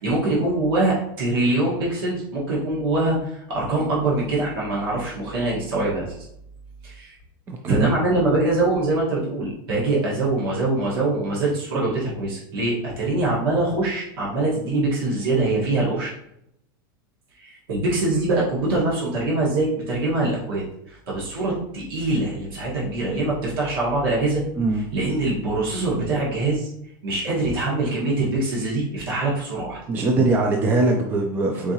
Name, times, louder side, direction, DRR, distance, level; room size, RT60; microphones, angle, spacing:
voice 1, 0.0-6.1 6.8-7.2 7.7-16.1 17.3-24.4 24.7-26.7 27.0-29.8, right 2 dB, 85° right, -6 dB, 1.5 m, -23 dB
voice 2, 7.5-7.9 24.6-24.8 29.9-31.7, right 2 dB, 15° right, 2 dB, 0.3 m, -21 dB
4.7 x 3.6 x 2.8 m, 0.77 s
supercardioid pair, 165°, 12 cm